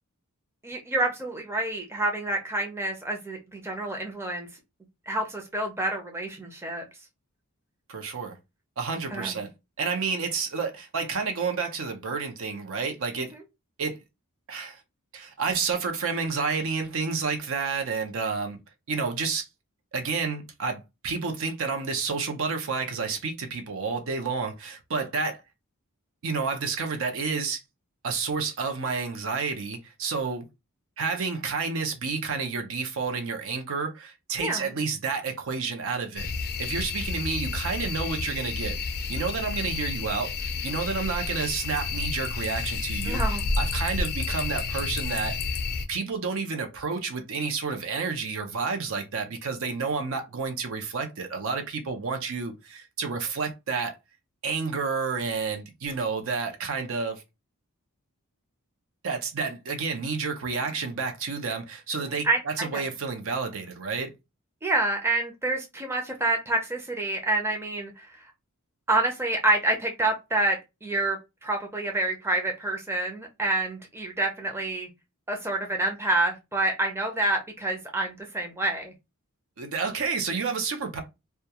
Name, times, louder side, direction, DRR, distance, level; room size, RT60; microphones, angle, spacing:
voice 1, 0.6-4.5 5.1-6.8 9.1-9.5 13.2-13.4 34.4-34.8 43.1-43.4 60.6-60.7 62.0-62.8 64.6-68.3 68.9-74.9 75.3-78.9, right 2 dB, 10° right, 0.5 m, -28 dB
voice 2, 7.9-8.4 8.8-9.5 9.8-13.3 13.8-14.0 14.5-14.8 15.1-18.6 18.9-19.5 19.9-25.4 26.2-27.6 28.0-30.5 31.0-36.3 36.6-38.8 39.1-40.3 40.6-43.2 43.6-45.6 45.9-53.9 54.4-57.2 59.0-64.1 79.6-81.0, right 5 dB, 65° right, 0.5 m, -30 dB
sound 1, 36.2-45.9, left 4 dB, 45° left, 0.4 m, -30 dB
2.3 x 2.2 x 2.8 m
head